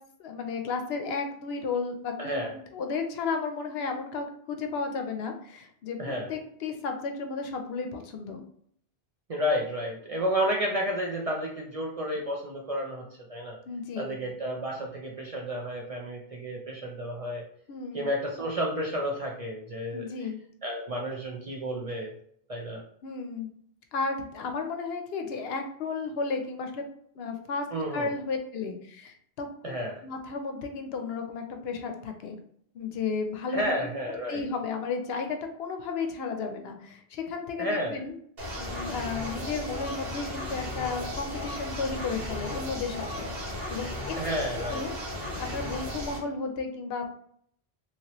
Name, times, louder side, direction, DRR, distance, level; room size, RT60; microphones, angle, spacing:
voice 1, 0.2-6.0 6.3-8.4 13.7-14.2 17.7-18.1 19.9-20.4 23.0-23.5 23.9-26.8 27.2-27.7 27.9-29.5 30.0-32.4 32.7-33.7 34.3-38.1 38.6-44.9 45.4-47.1, left 4 dB, 75° left, 5 dB, 0.8 m, -33 dB
voice 2, 2.2-2.5 6.0-6.3 9.3-13.6 14.0-17.4 17.9-20.1 20.6-22.1 22.5-22.8 27.7-28.1 29.6-30.0 33.5-34.4 37.6-38.0 44.2-44.8, equal, 50° right, -1 dB, 0.5 m, -31 dB
sound 1, 38.4-46.2, left 1 dB, 70° right, 1.4 m, -35 dB
2.9 x 2.8 x 2.9 m, 0.66 s
omnidirectional pair, 1.1 m